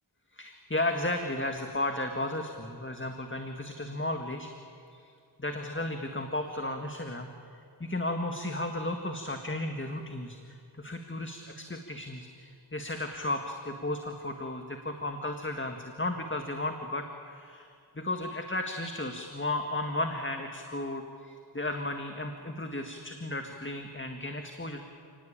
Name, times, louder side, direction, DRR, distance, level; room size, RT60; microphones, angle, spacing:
voice 1, 0.3-4.5 4.9-5.0 5.4-25.0, left 1 dB, 25° left, 4 dB, 1.9 m, -34 dB
30.0 x 19.0 x 8.8 m, 2.4 s
wide cardioid pair, 50°, 45 cm